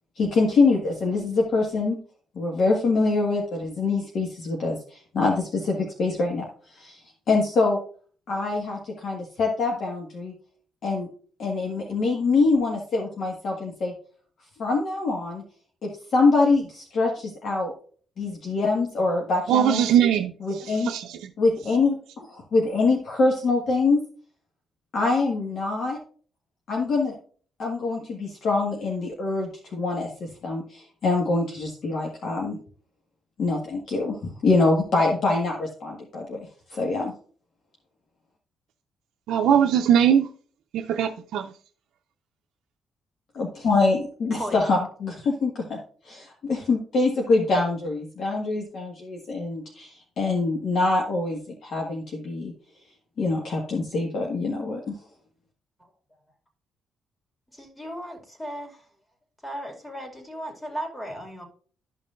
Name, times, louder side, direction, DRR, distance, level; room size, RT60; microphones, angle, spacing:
voice 1, 0.2-2.0 2.3-6.5 6.7-7.0 7.3-7.8 8.3-10.3 10.8-11.1 11.4-13.9 14.6-15.4 15.8-17.7 18.2-19.8 20.4-20.9 21.4-24.0 24.9-26.0 26.7-27.1 27.6-32.6 33.4-36.4 36.7-37.1 43.3-45.8 46.1-52.5 53.2-54.9, left 3 dB, 60° left, 1.7 m, -24 dB
voice 2, 19.5-20.3 20.7-21.2 39.3-40.3 40.7-41.5, right 9 dB, 80° right, 0.5 m, -20 dB
voice 3, 44.4-44.7 57.5-58.8 59.4-61.5, equal, 10° left, 2.4 m, -36 dB
12.5 x 5.6 x 2.6 m
cardioid pair, 90°, 0 cm